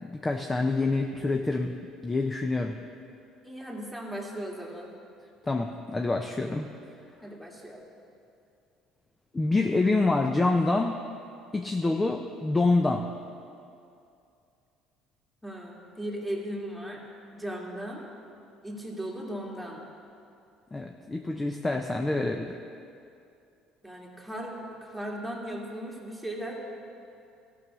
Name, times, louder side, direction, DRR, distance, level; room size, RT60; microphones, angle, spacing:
voice 1, 0.0-1.7 2.0-2.8 5.4-6.7 9.3-11.0 11.5-13.1 20.7-22.6, left 3 dB, 20° left, 4 dB, 0.6 m, -26 dB
voice 2, 3.4-4.9 7.2-7.9 15.4-17.0 17.3-18.1 18.6-19.8 23.8-26.6, right 1 dB, ahead, -2 dB, 2.2 m, -37 dB
14.0 x 5.5 x 6.2 m, 2.5 s
supercardioid pair, 75°, 0 cm